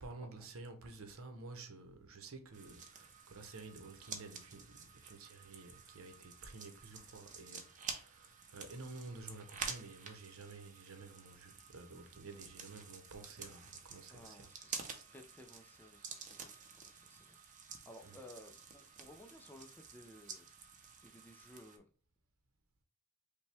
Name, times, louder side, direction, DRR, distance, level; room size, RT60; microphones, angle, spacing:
voice 1, 0.0-14.5 18.0-18.3, right 3 dB, 70° right, 0.8 m, -51 dB
sound 1, 2.5-21.8, right 5 dB, 35° right, 0.6 m, -50 dB
voice 2, 14.1-17.4 17.9-20.5 21.0-21.8, left 1 dB, 10° left, 0.4 m, -57 dB
5.4 x 2.2 x 3.3 m
head